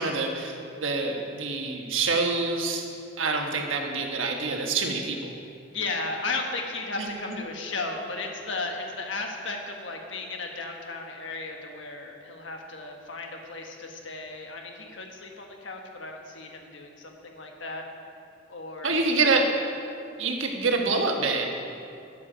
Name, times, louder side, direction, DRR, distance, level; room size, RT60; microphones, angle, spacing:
voice 1, 0.0-2.9 3.2-5.3 7.0-7.1 18.8-19.4 20.2-21.5, right 3 dB, 85° right, 2 dB, 1.2 m, -26 dB
voice 2, 5.7-17.8 18.5-18.9 19.2-19.4, left 3 dB, 75° left, 2 dB, 1.4 m, -35 dB
12.0 x 8.4 x 5.0 m, 2.5 s
head